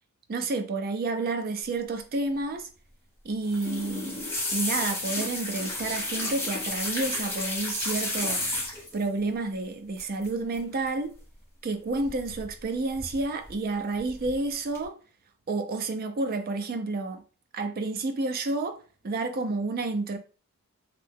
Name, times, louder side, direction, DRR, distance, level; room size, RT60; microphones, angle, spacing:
voice 1, 0.3-2.7 3.2-4.3 4.5-11.2 11.6-15.0 15.5-17.2 17.5-18.8 19.0-20.2, right 3 dB, 40° right, 0.4 m, -30 dB
sound 1, 3.4-9.0 10.0-10.3 10.5-10.9 12.1-12.6 13.0-13.5 14.0-14.4 14.8-14.9, left 2 dB, 10° left, 1.0 m, -32 dB
2.8 x 2.1 x 3.3 m
head